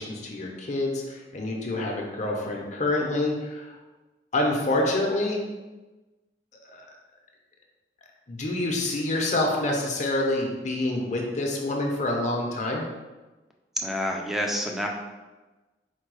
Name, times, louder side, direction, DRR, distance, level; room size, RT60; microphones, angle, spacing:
voice 1, 0.0-3.8 4.3-5.4 6.7-6.8 8.3-12.9, left 2 dB, 40° left, 0 dB, 0.7 m, -27 dB
voice 2, 13.8-14.9, equal, ahead, 0 dB, 0.5 m, -28 dB
4.5 x 2.3 x 4.7 m, 1.2 s
head